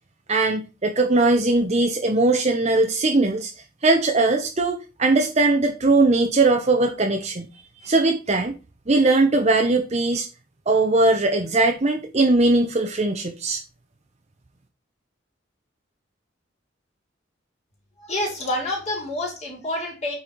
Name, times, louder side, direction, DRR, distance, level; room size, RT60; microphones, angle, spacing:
voice 1, 0.3-3.5 3.8-7.5 7.8-8.5 8.9-10.3 10.7-13.6, right 2 dB, 35° right, 0.8 m, -20 dB
voice 2, 18.0-20.1, left 1 dB, 35° left, 3.3 m, -28 dB
8.7 x 4.4 x 4.5 m
head